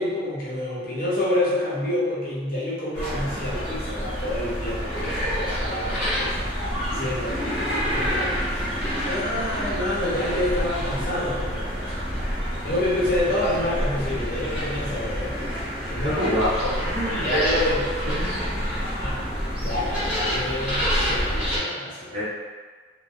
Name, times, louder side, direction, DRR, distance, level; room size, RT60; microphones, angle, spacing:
voice 1, 0.0-8.4 9.0-12.0 12.6-15.5 15.9-16.1 17.1-17.9 19.0-19.2 19.6-22.2, left 1 dB, 50° left, -7 dB, 0.7 m, -28 dB
sound 1, 2.9-21.6, equal, 10° right, 0.8 m, -28 dB
voice 2, 15.9-17.5 18.2-18.5 22.1-22.2, equal, 40° right, -9 dB, 0.8 m, -26 dB
2.5 x 2.1 x 2.4 m, 1.5 s
head